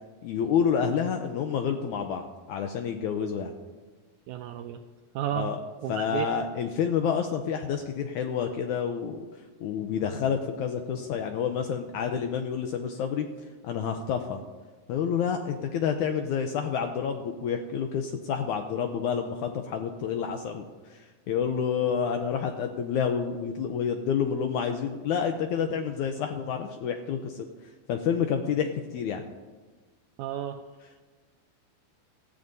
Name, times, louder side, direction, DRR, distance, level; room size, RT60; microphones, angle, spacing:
voice 1, 0.2-3.5 5.3-5.6 5.9-9.3 9.6-13.3 13.6-14.4 14.9-27.5 27.9-29.3, left 7 dB, 80° left, 5 dB, 1.8 m, -29 dB
voice 2, 4.3-4.8 5.2-5.5 5.8-6.3 30.2-30.6, right 11 dB, 85° right, 6 dB, 1.7 m, -32 dB
18.5 x 14.0 x 2.7 m, 1.3 s
omnidirectional pair, 4.0 m